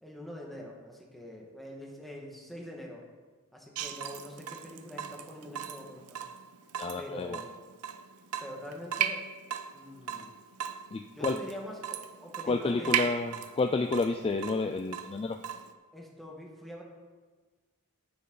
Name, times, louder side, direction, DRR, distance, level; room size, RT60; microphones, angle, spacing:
voice 1, 0.0-3.0 3.5-6.2 7.0-7.5 8.4-9.2 9.7-10.3 11.1-13.0 15.9-16.8, left 1 dB, ahead, -2 dB, 1.6 m, -44 dB
Water tap faucet / Drip, 3.8-15.7, right 8 dB, 80° right, 0.6 m, -37 dB
voice 2, 6.8-7.4 10.9-11.4 12.4-15.4, left 3 dB, 25° left, 6 dB, 0.3 m, -30 dB
9.6 x 9.5 x 3.9 m, 1.4 s
head